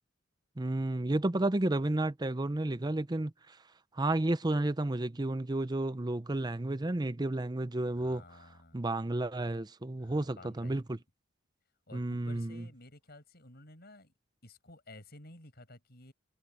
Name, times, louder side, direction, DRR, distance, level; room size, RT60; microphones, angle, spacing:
voice 1, 0.6-3.6 3.9-8.2 8.7-11.0 11.9-12.7, right 2 dB, 20° right, 0.6 m, -32 dB
voice 2, 7.9-8.8 10.0-10.8 11.9-14.1 14.4-16.1, left 2 dB, 55° left, 6.9 m, -53 dB
head